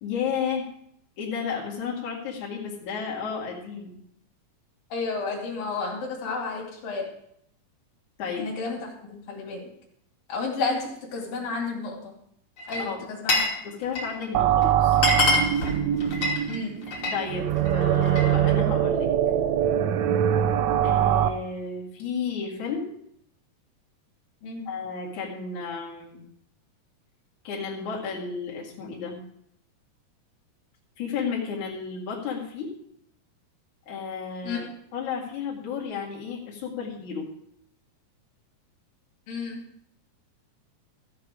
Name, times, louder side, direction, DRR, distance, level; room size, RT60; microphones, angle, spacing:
voice 1, 0.0-0.7 1.2-4.0 8.2-8.5 12.8-13.0 13.6-15.1 17.1-19.1 20.8-22.9 24.7-26.2 27.4-29.2 31.0-32.7 33.9-34.7 34.9-37.3, left 5 dB, 60° left, -5 dB, 3.6 m, -32 dB
voice 2, 4.9-7.1 8.4-9.7 10.3-12.2 12.7-13.4 16.5-16.8 24.4-24.7 34.4-34.6 39.3-39.6, left 4 dB, 80° left, -1 dB, 4.1 m, -31 dB
Glass, 12.6-13.6 13.8-14.3 14.6-14.7 14.9-17.2 17.6-18.3, left 2 dB, 40° left, 3.3 m, -25 dB
sound 1, 14.3-21.3, right 10 dB, 85° right, 1.5 m, -23 dB
14.5 x 8.5 x 4.9 m, 0.71 s
omnidirectional pair, 4.0 m